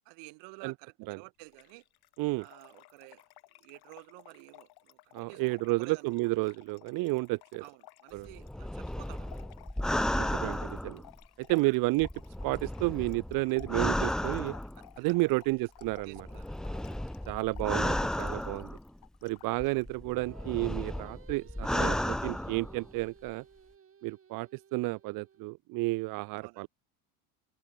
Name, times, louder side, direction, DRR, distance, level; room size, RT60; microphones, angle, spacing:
voice 1, 0.1-1.8 2.4-3.2 3.6-6.3 7.6-9.5 11.5-11.8 15.0-15.3 16.1-17.0 26.4-26.7, right 33 dB, 70° right, 5.9 m, -52 dB
Trickle dribble / Fill (with liquid), 1.5-20.0, left 18 dB, 55° left, 3.2 m, -56 dB
voice 2, 5.1-7.6 8.1-8.3 10.2-11.0 11.4-12.1 12.4-14.5 15.0-16.3 17.3-18.7 19.2-23.4 24.0-26.7, right 23 dB, 50° right, 0.6 m, -31 dB
sound 1, 8.3-11.5 12.0-15.0 15.8-19.1 19.6-23.0 23.3-23.4, left 1 dB, ahead, 0.3 m, -34 dB
Singing, 20.2-25.5, right 7 dB, 30° right, 5.3 m, -57 dB
open air
supercardioid pair, 105°, 45 cm